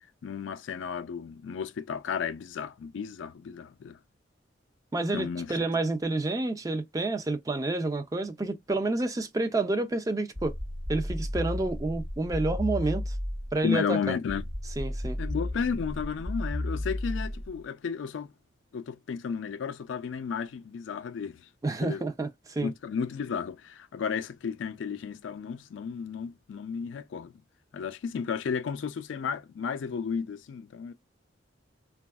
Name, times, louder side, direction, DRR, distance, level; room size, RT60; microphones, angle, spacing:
voice 1, 0.2-4.0 5.1-5.7 13.6-14.4 15.2-18.3 18.7-21.5 21.8-22.0 22.6-27.3 27.7-30.9, left 6 dB, 85° left, 0.4 m, -33 dB
voice 2, 4.9-10.5 10.9-13.2 13.5-14.2 14.8-15.2 21.6-22.7, right 2 dB, 20° right, 0.4 m, -29 dB
sound 1, 10.4-13.6 14.3-17.6, left 1 dB, 35° right, 1.1 m, -33 dB
3.3 x 2.3 x 2.3 m
head